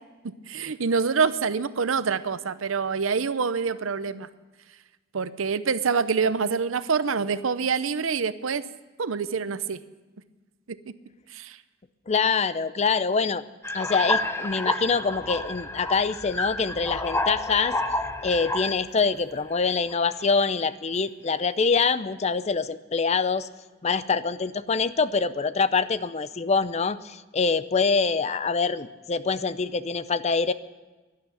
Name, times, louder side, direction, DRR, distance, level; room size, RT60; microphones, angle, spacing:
voice 1, 0.5-4.3 5.1-8.6 9.0-9.8 10.9-11.0 11.3-11.6, right 5 dB, 85° right, 14 dB, 0.7 m, -26 dB
voice 2, 12.1-13.4 13.7-17.8 18.2-23.5 23.8-30.5, left 5 dB, 35° left, 15 dB, 0.5 m, -25 dB
sound 1, 13.6-18.9 19.5-19.9, left 1 dB, 10° left, 0.8 m, -29 dB
12.0 x 11.5 x 9.2 m, 1.2 s
head